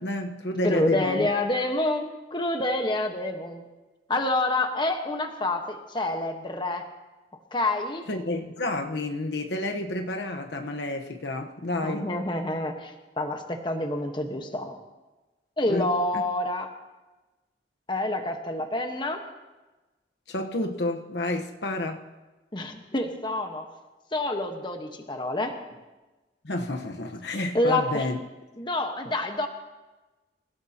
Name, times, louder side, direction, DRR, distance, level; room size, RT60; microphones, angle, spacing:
voice 1, 0.0-1.3 8.1-12.1 15.7-15.9 16.1-16.2 20.3-22.1 26.4-28.2, left 2 dB, 70° left, 4 dB, 1.1 m, -30 dB
voice 2, 0.6-3.7 4.1-6.8 7.5-8.0 11.8-14.8 15.6-16.7 17.9-19.2 22.5-23.7 24.1-25.8 27.5-28.1 28.6-29.5, left 1 dB, 25° left, 4 dB, 1.3 m, -27 dB
27.5 x 16.5 x 2.9 m, 1.1 s
head